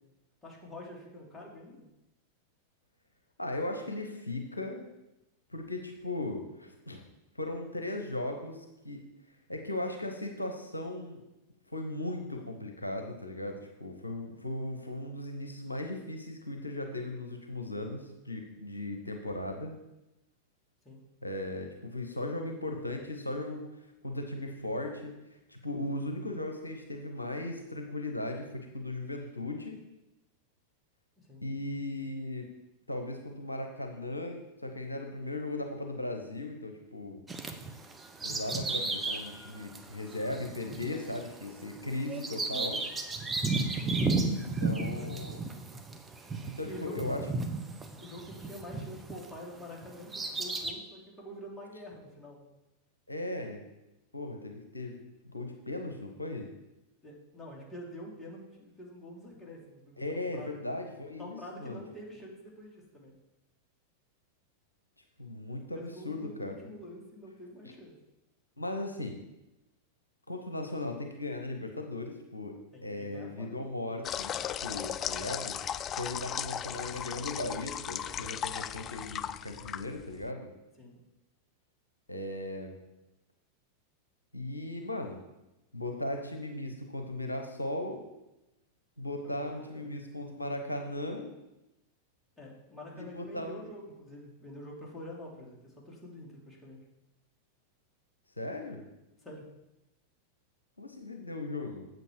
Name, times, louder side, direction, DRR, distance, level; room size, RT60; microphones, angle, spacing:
voice 1, 0.4-1.9 20.8-21.0 31.2-31.4 43.8-44.0 44.6-45.2 46.6-47.0 48.0-52.5 57.0-60.0 60.3-60.5 61.2-63.1 65.7-67.9 72.7-73.5 80.8-81.0 89.4-89.9 92.4-96.8 99.2-99.4, left 1 dB, 15° left, -3 dB, 2.7 m, -47 dB
voice 2, 3.4-4.8 5.5-7.0 7.3-9.0 9.5-11.2 11.7-19.7 21.2-23.7 24.0-25.1 25.5-29.8 31.4-32.5 32.9-37.2 38.2-42.8 44.6-45.4 46.4-47.3 53.1-53.6 54.1-55.0 55.2-56.5 60.0-61.8 65.2-66.6 68.6-69.2 70.3-72.6 72.8-75.6 76.0-80.5 82.1-82.8 84.3-85.2 85.7-88.0 89.0-91.3 92.9-93.6 98.4-98.8 100.8-101.9, left 2 dB, 80° left, 4 dB, 0.9 m, -37 dB
Bird vocalization bird call bird song, 37.3-49.4 49.8-50.7, right 3 dB, 15° right, 0.9 m, -34 dB
sound 1, 74.0-80.3, left 9 dB, 30° left, 0.3 m, -36 dB
8.1 x 7.6 x 4.7 m, 0.94 s
figure-of-eight pair, 90°, 0 cm